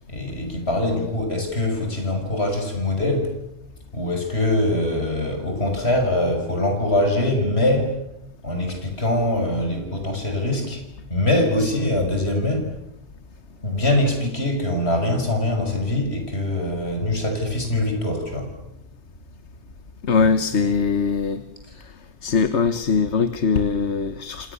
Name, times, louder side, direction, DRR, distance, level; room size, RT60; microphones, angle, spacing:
voice 1, 0.1-3.3 3.9-8.0 8.4-10.8 11.1-12.7 13.6-18.5 20.2-20.3 20.6-20.7 21.6-21.7, left 1 dB, 65° left, 4 dB, 6.5 m, -23 dB
voice 2, 20.0-21.4 22.2-24.5, left 5 dB, 80° left, 11 dB, 1.5 m, -21 dB
29.5 x 26.5 x 7.0 m, 0.84 s
omnidirectional pair, 1.2 m